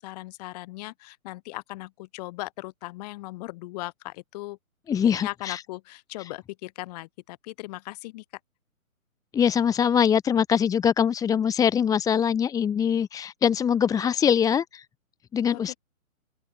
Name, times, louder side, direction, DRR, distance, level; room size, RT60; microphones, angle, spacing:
voice 1, 0.0-4.6 5.0-8.2 15.5-15.8, left 20 dB, 30° left, 5.3 m, -38 dB
voice 2, 4.9-5.6 6.2-6.3 9.3-14.9 15.3-15.7, left 8 dB, 10° left, 1.9 m, -23 dB
open air
figure-of-eight pair, 140°, 43 cm